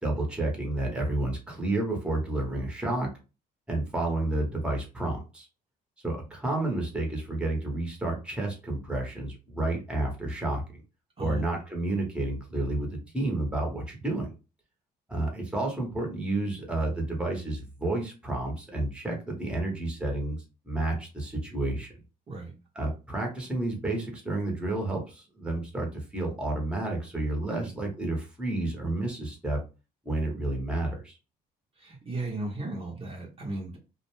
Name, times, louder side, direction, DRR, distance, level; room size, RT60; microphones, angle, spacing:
voice 1, 0.0-3.1 3.7-5.5 6.0-10.8 11.2-14.3 15.1-20.4 20.6-21.9 22.8-29.6 30.0-31.2, right 2 dB, 5° right, 0 dB, 0.9 m, -30 dB
voice 2, 31.8-33.8, right 2 dB, 35° right, -1 dB, 0.8 m, -36 dB
2.4 x 2.1 x 3.0 m, 0.30 s
cardioid pair, 110°, 17 cm